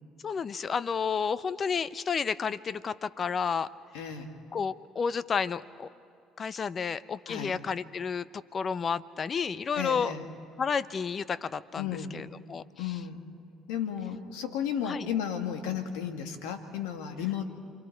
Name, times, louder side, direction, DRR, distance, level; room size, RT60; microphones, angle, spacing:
voice 1, 0.2-3.7 4.5-5.9 6.4-10.1 10.6-12.6 14.8-15.1, left 6 dB, 40° left, 16 dB, 0.7 m, -31 dB
voice 2, 3.9-4.3 7.3-7.6 9.8-10.2 11.8-12.2 12.8-13.2 13.7-17.5, left 8 dB, 80° left, 6 dB, 1.8 m, -33 dB
28.5 x 24.5 x 4.6 m, 2.5 s
hypercardioid pair, 65°, 0 cm